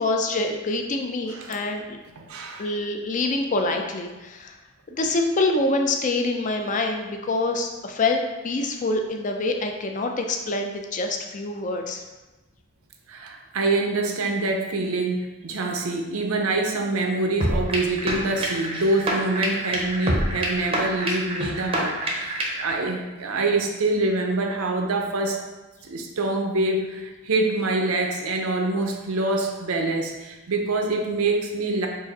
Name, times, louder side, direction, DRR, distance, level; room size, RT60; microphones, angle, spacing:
voice 1, 0.0-2.0 2.6-4.6 4.9-12.0, left 2 dB, 35° left, 4 dB, 0.4 m, -26 dB
voice 2, 1.3-1.7 2.2-2.7 13.1-25.4 25.8-31.9, right 2 dB, 80° right, 2 dB, 0.6 m, -25 dB
sound 1, 17.4-22.7, right 1 dB, 25° right, 0.6 m, -27 dB
4.8 x 2.5 x 4.0 m, 1.2 s
head